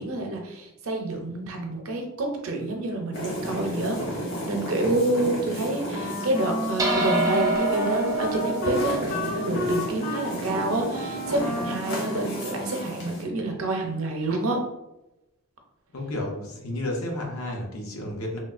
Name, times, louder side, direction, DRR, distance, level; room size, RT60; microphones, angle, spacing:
voice 1, 0.0-4.0 4.4-14.6, right 2 dB, 70° right, 3 dB, 0.6 m, -28 dB
sound 1, 3.1-13.2, equal, 60° left, 1.0 m, -34 dB
Wind instrument woodwind instrument, 5.9-13.3, left 1 dB, 40° left, 0.4 m, -33 dB
sound 2, 6.8-11.4, right 2 dB, 15° right, 0.4 m, -28 dB
voice 2, 15.9-18.4, left 1 dB, 75° left, 0 dB, 0.7 m, -31 dB
3.2 x 2.3 x 2.4 m, 0.92 s
head